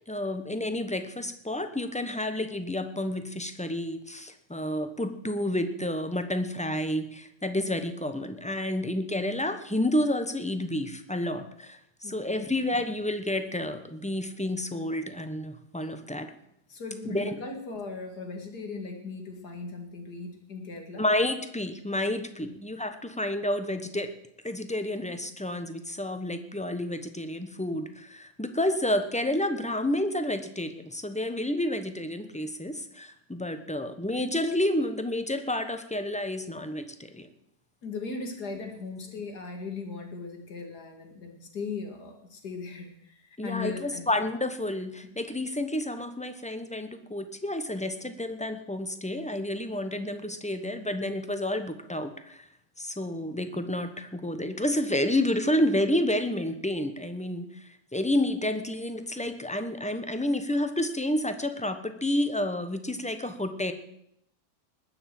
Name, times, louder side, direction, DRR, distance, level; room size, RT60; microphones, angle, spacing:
voice 1, 0.1-16.3 17.1-17.4 21.0-24.1 24.4-37.3 43.4-52.5 52.8-63.7, left 1 dB, 5° left, 8 dB, 0.7 m, -30 dB
voice 2, 12.0-12.4 16.7-21.0 22.1-22.6 37.8-44.1, left 4 dB, 70° left, 4 dB, 2.7 m, -38 dB
20.0 x 6.9 x 7.7 m, 0.75 s
omnidirectional pair, 1.8 m